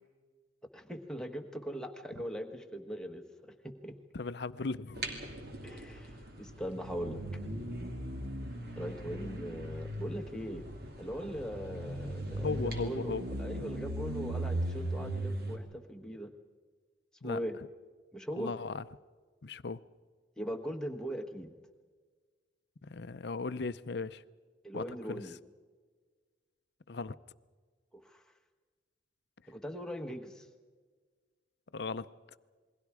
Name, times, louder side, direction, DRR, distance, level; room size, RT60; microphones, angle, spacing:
voice 1, 0.7-3.9 5.6-7.2 8.8-10.6 11.0-16.3 17.2-17.6 18.1-18.5 20.4-21.5 24.6-25.4 27.9-28.2 29.5-30.5, equal, 5° left, 1.3 m, -40 dB
voice 2, 4.1-5.1 12.4-13.3 17.2-17.4 18.4-18.8 19.4-19.8 22.8-24.2 24.7-25.4 26.9-27.1 31.7-32.1, left 4 dB, 60° left, 0.6 m, -37 dB
sound 1, 4.9-15.6, right 1 dB, 55° right, 2.7 m, -38 dB
28.5 x 21.5 x 4.9 m
head